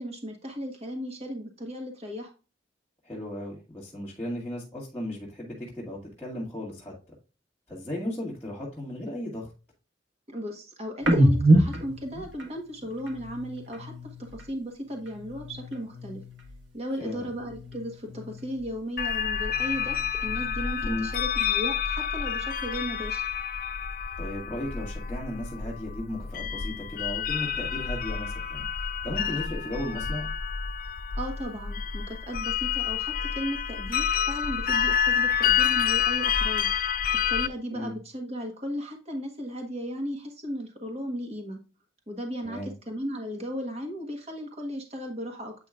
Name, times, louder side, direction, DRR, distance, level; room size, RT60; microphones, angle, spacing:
voice 1, 0.0-2.3 10.3-16.2 16.7-23.2 31.2-36.7 37.3-41.6 42.1-45.5, equal, 35° right, 3 dB, 1.4 m, -36 dB
voice 2, 3.0-6.9 7.7-9.5 17.0-17.3 20.8-21.1 24.2-30.3 37.7-37.9 42.4-42.7, left 1 dB, 10° left, -6 dB, 1.9 m, -35 dB
sound 1, 11.0-14.6 14.9-16.7 17.0-18.9 19.2-21.1, right 1 dB, 75° right, 1.5 m, -28 dB
sound 2, 19.0-37.5, left 7 dB, 50° left, 0.4 m, -28 dB
8.7 x 5.2 x 2.5 m, 0.32 s
head